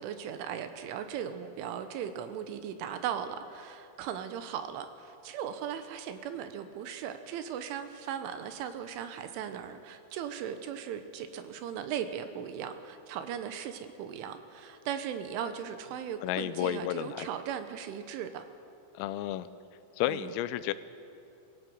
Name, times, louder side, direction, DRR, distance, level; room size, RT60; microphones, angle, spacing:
voice 1, 0.0-18.4 20.1-20.3, right 8 dB, 75° right, 9 dB, 3.3 m, -38 dB
voice 2, 16.2-17.3 19.0-19.5 20.0-20.7, left 13 dB, 90° left, 14 dB, 3.4 m, -32 dB
22.0 x 16.5 x 7.9 m, 2.6 s
omnidirectional pair, 5.9 m